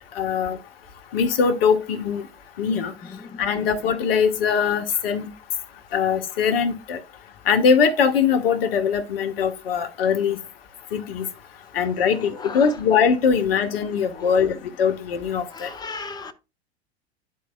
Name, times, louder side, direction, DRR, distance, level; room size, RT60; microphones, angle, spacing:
voice 1, 0.2-0.6 1.1-2.2 2.6-2.9 3.4-5.3 5.9-7.0 7.5-10.4 10.9-11.3 11.7-15.7, left 6 dB, 60° left, 1.1 m, -21 dB
voice 2, 2.7-3.7 11.8-11.9 12.3-12.8 14.1-14.5 15.5-16.3, left 4 dB, 10° left, 0.7 m, -38 dB
11.5 x 4.7 x 2.3 m
figure-of-eight pair, 85°, 33 cm